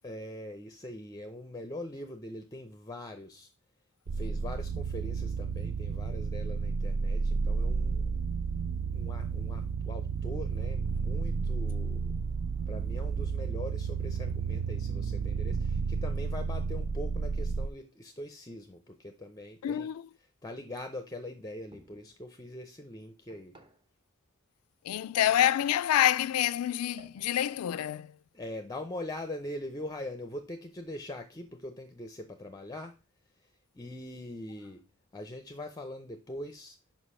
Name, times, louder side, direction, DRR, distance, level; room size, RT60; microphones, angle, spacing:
voice 1, 0.0-3.5 4.1-8.2 8.9-12.1 12.7-19.9 20.4-23.6 28.3-33.0 33.4-34.8 35.1-36.8, left 1 dB, 15° left, 0.5 m, -42 dB
sound 1, 4.1-17.7, right 5 dB, 65° right, 0.4 m, -32 dB
voice 2, 19.6-20.1 24.8-28.2, left 11 dB, 85° left, 0.3 m, -27 dB
piece of wood thrown or dropped, 21.7-22.2 23.3-23.9 25.3-25.9 27.0-27.7, right 2 dB, 25° right, 0.9 m, -57 dB
5.3 x 5.1 x 5.5 m
head